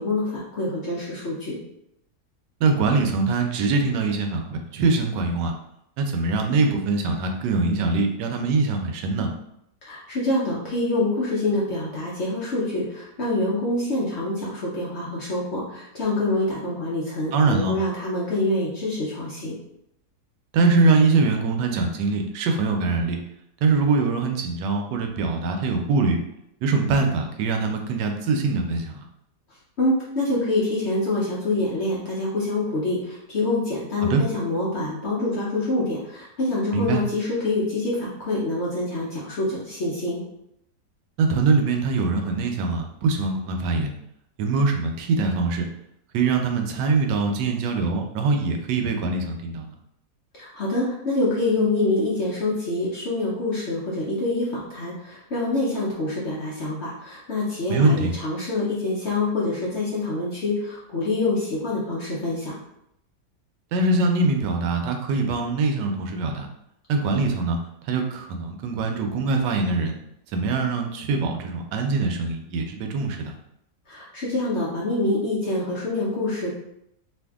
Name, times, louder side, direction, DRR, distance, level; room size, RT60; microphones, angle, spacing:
voice 1, 0.0-1.6 9.8-19.6 29.8-40.2 50.3-62.6 73.9-76.5, left 2 dB, 55° left, -6 dB, 0.8 m, -26 dB
voice 2, 2.6-5.5 6.0-9.3 17.3-17.8 20.5-23.2 23.6-26.2 26.6-29.0 34.0-34.2 36.7-37.0 41.2-43.9 44.4-45.6 46.1-49.7 57.7-58.1 63.7-66.5 66.9-67.6 67.9-69.9 70.3-73.3, right 3 dB, 85° right, 3 dB, 1.2 m, -23 dB
2.8 x 2.6 x 3.4 m, 0.79 s
omnidirectional pair, 1.8 m